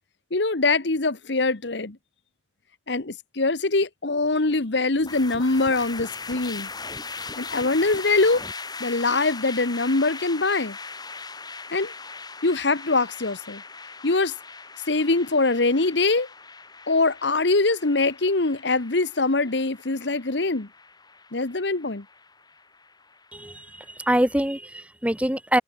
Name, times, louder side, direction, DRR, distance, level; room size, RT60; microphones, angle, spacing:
voice 1, 0.3-2.0 2.9-6.7 7.4-8.4 8.8-10.8 11.7-11.9 12.4-13.6 14.0-14.3 14.9-16.3 16.9-20.7 21.3-22.0, left 3 dB, 70° left, 1.3 m, -23 dB
sound 1, 5.0-24.3, left 4 dB, 20° left, 7.6 m, -40 dB
voice 2, 23.3-25.6, right 1 dB, 5° right, 2.3 m, -25 dB
head